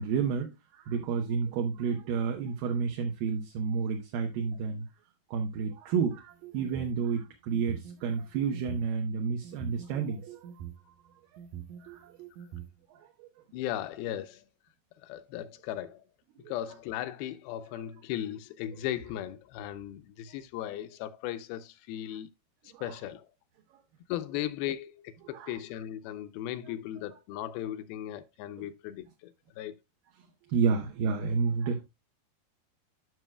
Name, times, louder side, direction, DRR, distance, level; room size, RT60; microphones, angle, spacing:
voice 1, 0.0-4.8 5.3-10.5 11.8-12.1 13.2-13.3 16.4-16.5 22.7-22.8 25.3-25.6 30.5-31.8, right 6 dB, 70° right, 2.5 m, -30 dB
sound 1, 6.3-7.0 7.5-8.9 9.4-10.7 11.4-12.7, right 10 dB, 90° right, 1.6 m, -44 dB
voice 2, 13.5-14.5 15.0-16.0 16.5-22.3 22.8-23.3 24.1-29.8, left 12 dB, 80° left, 2.4 m, -37 dB
12.0 x 6.1 x 2.2 m
omnidirectional pair, 4.5 m